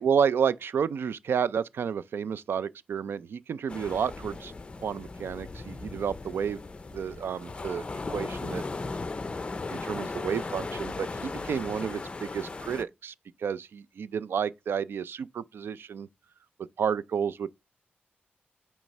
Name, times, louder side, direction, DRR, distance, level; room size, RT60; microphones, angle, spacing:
voice 1, 0.0-4.5 4.8-6.6 6.9-8.6 9.6-13.1 13.4-16.1 16.8-17.5, right 7 dB, 70° right, 0.4 m, -30 dB
sound 1, 3.7-12.8, left 3 dB, 25° left, 0.5 m, -37 dB
9.0 x 3.2 x 5.3 m
wide cardioid pair, 145°, 4 cm